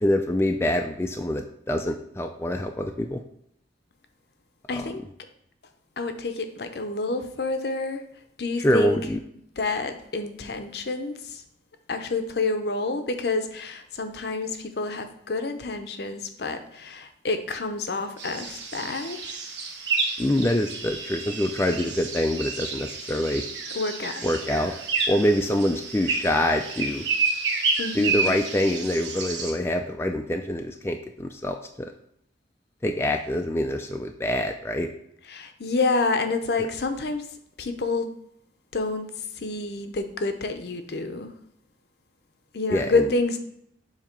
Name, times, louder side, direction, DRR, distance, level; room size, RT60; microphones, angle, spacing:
voice 1, 0.0-3.2 4.7-4.9 8.6-9.2 20.2-23.4 24.2-24.7 25.1-27.1 27.9-31.9 32.8-34.9 42.7-43.1, left 1 dB, 15° left, 3 dB, 0.3 m, -25 dB
voice 2, 4.7-5.0 6.0-8.0 8.4-9.0 9.6-11.4 11.9-19.2 23.7-24.2 27.8-28.4 35.3-37.2 37.6-38.1 38.7-39.1 39.4-41.3 42.5-43.4, left 3 dB, 60° left, 7 dB, 0.6 m, -28 dB
sound 1, 18.2-29.5, right 4 dB, 75° right, 1.0 m, -30 dB
7.3 x 2.9 x 5.2 m, 0.73 s
head